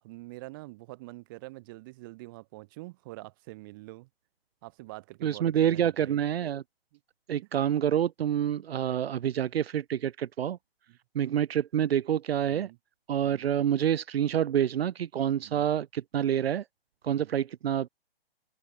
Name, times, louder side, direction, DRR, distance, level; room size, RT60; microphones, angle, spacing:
voice 1, 0.0-4.1 4.6-6.2 6.9-7.0 10.9-11.0 12.4-12.8 13.2-13.5 15.4-15.7 17.1-17.3, right 22 dB, 20° right, 2.7 m, -45 dB
voice 2, 5.2-6.6 7.3-10.6 11.2-12.7 13.1-16.6 17.0-17.9, right 10 dB, 75° right, 0.6 m, -27 dB
open air
hypercardioid pair, 170°, 31 cm